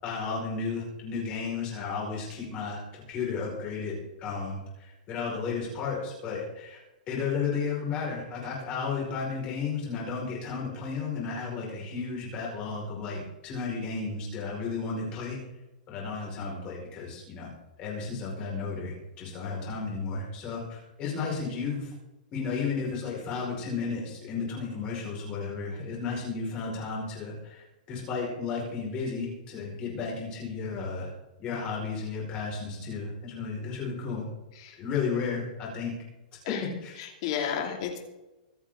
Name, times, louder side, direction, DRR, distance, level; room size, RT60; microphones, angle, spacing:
voice 1, 0.0-6.8 7.1-15.4 15.9-17.5 17.8-21.9 22.3-31.1 31.4-34.2 34.8-35.9 36.5-37.0, left 5 dB, 20° left, -3 dB, 5.0 m, -33 dB
voice 2, 37.0-38.0, left 8 dB, 35° left, 3 dB, 2.7 m, -32 dB
25.0 x 8.7 x 3.8 m, 1.0 s
hypercardioid pair, 175°, 5 cm